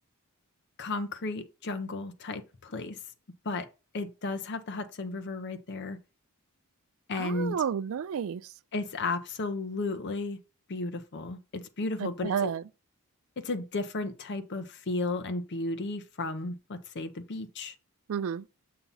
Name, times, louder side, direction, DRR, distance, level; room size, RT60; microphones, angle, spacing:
voice 1, 0.8-3.0 3.4-3.7 3.9-6.0 7.1-7.6 8.7-10.4 10.7-12.5 13.4-17.7, left 3 dB, 50° left, 0.7 m, -34 dB
voice 2, 7.2-8.5 12.0-12.6 18.1-18.5, right 7 dB, 65° right, 0.3 m, -31 dB
7.0 x 2.9 x 5.4 m
head